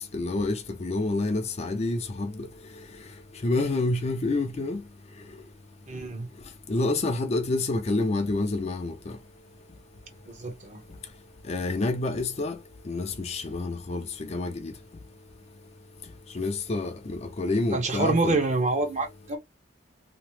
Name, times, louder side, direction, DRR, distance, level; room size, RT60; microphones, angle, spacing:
voice 1, 0.1-2.5 3.4-4.8 6.7-8.9 11.5-12.6 12.9-14.0 14.3-14.7 16.4-18.4, left 2 dB, 35° left, 0.5 m, -28 dB
voice 2, 5.9-6.3 10.3-10.8 17.7-19.4, right 3 dB, 40° right, 0.9 m, -27 dB
2.9 x 2.0 x 3.0 m
head